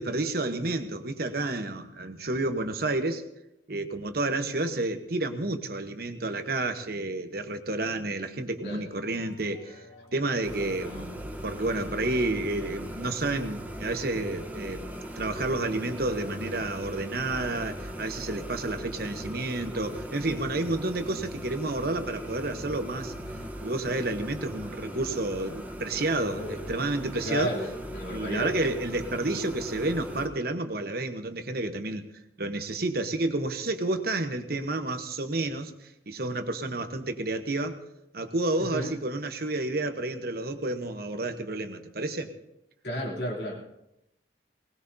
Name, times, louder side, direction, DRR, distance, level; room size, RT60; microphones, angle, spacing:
voice 1, 0.0-3.2 3.7-9.8 10.1-14.8 15.2-23.1 23.6-27.5 28.1-32.1 32.4-37.8 38.1-42.3, right 2 dB, 50° right, 6 dB, 1.1 m, -30 dB
sound 1, 8.9-13.3, left 1 dB, 35° left, 3.7 m, -55 dB
sound 2, 10.4-30.3, equal, 10° right, 1.0 m, -39 dB
voice 2, 27.2-28.7 38.7-38.9 42.8-43.6, equal, 55° left, -2 dB, 3.3 m, -33 dB
20.0 x 19.0 x 2.8 m, 0.86 s
head